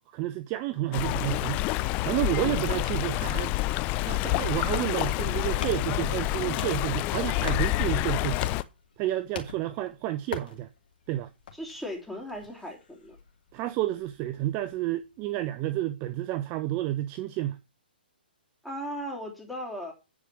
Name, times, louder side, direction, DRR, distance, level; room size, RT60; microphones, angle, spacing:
voice 1, 0.1-1.6 2.0-8.5 9.0-10.7 11.1-11.3 13.5-17.6, right 15 dB, 30° right, 0.6 m, -30 dB
Stream, 0.9-8.6, left 17 dB, 25° left, 0.4 m, -28 dB
sound 1, 8.0-15.5, left 6 dB, 60° left, 2.5 m, -44 dB
voice 2, 11.5-13.2 18.6-19.9, equal, ahead, 3.4 m, -37 dB
9.6 x 5.0 x 6.2 m
hypercardioid pair, 135°, 6 cm